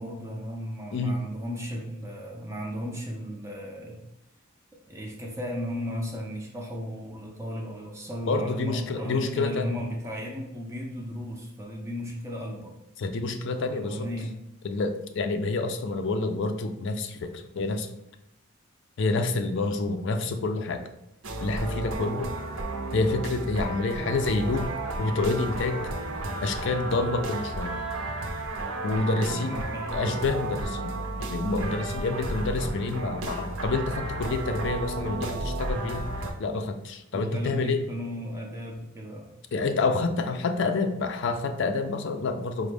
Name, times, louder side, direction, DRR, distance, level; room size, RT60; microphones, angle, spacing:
voice 1, 0.0-4.0 4.9-12.7 13.4-14.4 29.3-30.0 37.1-39.3, equal, 15° right, 0 dB, 0.4 m, -35 dB
voice 2, 8.3-9.7 13.0-14.0 14.6-17.3 17.6-17.9 19.0-20.8 21.4-22.3 22.9-24.7 25.0-25.8 26.4-27.7 28.8-29.6 29.9-30.9 31.3-36.1 36.4-37.8 39.5-42.7, left 3 dB, 60° left, 7 dB, 0.4 m, -28 dB
sound 1, 21.2-36.3, right 2 dB, 80° right, 0.6 m, -33 dB
5.0 x 2.1 x 3.3 m, 0.86 s
head